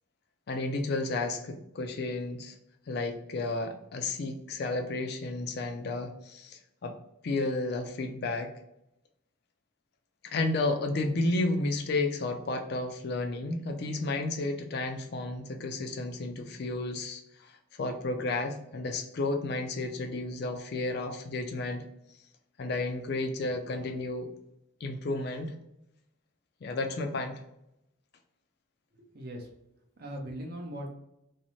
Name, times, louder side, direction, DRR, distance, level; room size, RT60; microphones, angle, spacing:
voice 1, 0.5-2.6 2.9-6.9 7.2-8.5 10.2-21.8 22.6-24.3 24.8-25.5 26.6-27.4, left 2 dB, 50° left, 4 dB, 0.4 m, -32 dB
voice 2, 28.9-29.5 30.0-30.9, equal, 45° right, 1 dB, 0.6 m, -39 dB
2.6 x 2.1 x 2.9 m, 0.82 s
head